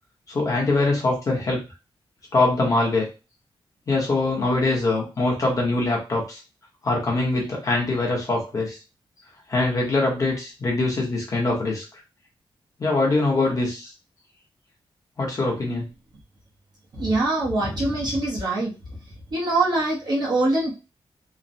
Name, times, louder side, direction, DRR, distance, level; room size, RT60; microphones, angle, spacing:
voice 1, 0.3-1.6 2.3-3.1 3.9-6.4 6.8-8.8 9.5-11.8 12.8-13.9 15.2-15.9, left 2 dB, 35° left, -2 dB, 0.9 m, -23 dB
voice 2, 16.9-18.7 19.3-20.7, right 2 dB, 45° right, -4 dB, 0.9 m, -23 dB
3.1 x 2.1 x 2.6 m, 0.30 s
wide cardioid pair, 180°, 10 cm